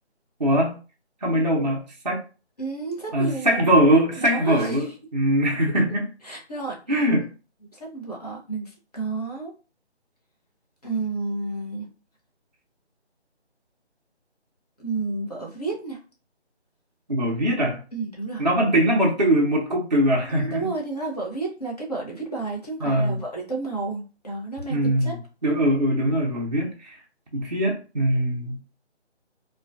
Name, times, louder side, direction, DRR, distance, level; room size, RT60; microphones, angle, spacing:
voice 1, 0.4-0.7 1.2-2.2 3.1-6.1 6.9-7.3 17.1-17.8 18.4-20.7 22.8-23.2 24.7-25.2 25.4-26.9 27.3-28.6, right 1 dB, 40° right, -1 dB, 0.4 m, -22 dB
voice 2, 2.6-3.7 4.2-4.9 6.2-7.1 7.7-9.5 10.8-11.9 14.8-16.0 17.9-18.5 20.4-25.2, right 3 dB, 35° left, -2 dB, 0.6 m, -31 dB
2.3 x 2.1 x 2.4 m, 0.34 s
figure-of-eight pair, 160°, 34 cm